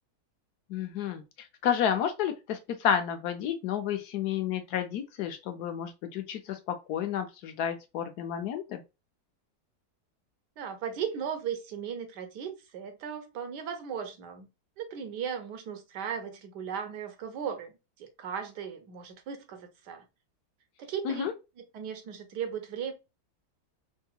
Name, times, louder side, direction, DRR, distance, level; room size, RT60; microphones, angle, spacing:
voice 1, 0.7-1.2 1.6-8.8 21.0-21.3, left 9 dB, 70° left, 1.1 m, -31 dB
voice 2, 10.6-14.5 14.8-17.7 18.0-20.0 20.8-21.3 21.6-22.9, right 7 dB, 75° right, 1.4 m, -37 dB
3.7 x 2.7 x 2.3 m
omnidirectional pair, 1.8 m